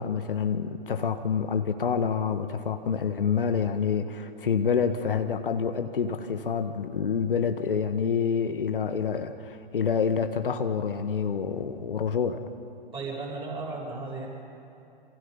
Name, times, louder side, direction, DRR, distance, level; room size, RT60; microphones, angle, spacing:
voice 1, 0.0-12.4, left 6 dB, 65° left, 7 dB, 1.5 m, -27 dB
voice 2, 12.9-14.3, right 3 dB, 15° right, -3 dB, 7.8 m, -35 dB
28.0 x 27.0 x 5.6 m, 2.8 s
figure-of-eight pair, 115°, 29 cm